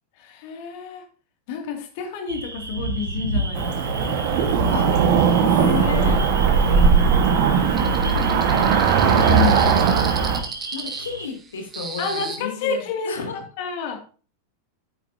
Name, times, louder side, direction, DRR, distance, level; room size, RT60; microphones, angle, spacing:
voice 1, 0.2-1.0 1.5-4.3 6.1-7.2 9.3-9.7 12.0-13.1 13.6-14.0, left 5 dB, 50° left, 3 dB, 2.4 m, -30 dB
sound 1, 2.3-11.3, right 2 dB, 75° right, 1.5 m, -32 dB
Cricket / Motor vehicle (road), 3.5-10.4, right 6 dB, 45° right, 1.5 m, -18 dB
voice 2, 5.4-6.2 7.8-9.1 10.7-13.4, left 5 dB, 65° left, 2 dB, 2.8 m, -32 dB
sound 2, 7.8-12.4, right 4 dB, 20° right, 1.9 m, -34 dB
12.5 x 9.1 x 2.8 m, 0.38 s
figure-of-eight pair, 90°, 0 cm